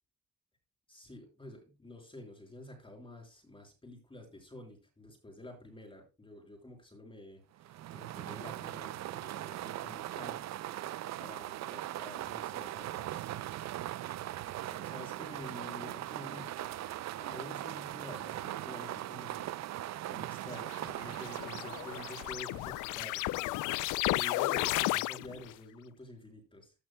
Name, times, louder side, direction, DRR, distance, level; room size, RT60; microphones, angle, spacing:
voice 1, 0.9-10.4 11.2-13.3 13.6-13.7 14.6-16.7 17.2-19.5 20.1-23.4 23.7-26.7, left 1 dB, 15° left, 1 dB, 5.3 m, -49 dB
sound 1, 7.6-23.0, right 14 dB, 65° right, 0.5 m, -40 dB
sound 2, 20.6-25.5, left 17 dB, 85° left, 0.5 m, -33 dB
15.5 x 8.6 x 2.2 m, 0.28 s
cardioid pair, 90°, 30 cm